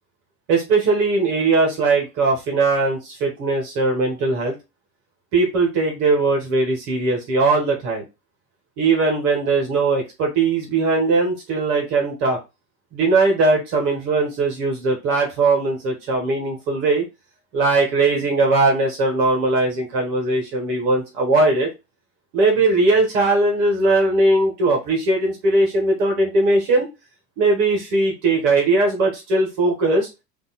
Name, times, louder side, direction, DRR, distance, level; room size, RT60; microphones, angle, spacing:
voice 1, 0.5-4.5 5.3-8.0 8.8-12.4 12.9-17.1 17.5-21.7 22.3-26.9 27.4-30.1, right 3 dB, 45° right, 1 dB, 1.6 m, -19 dB
3.6 x 2.9 x 4.1 m, 0.24 s
figure-of-eight pair, 85°, 48 cm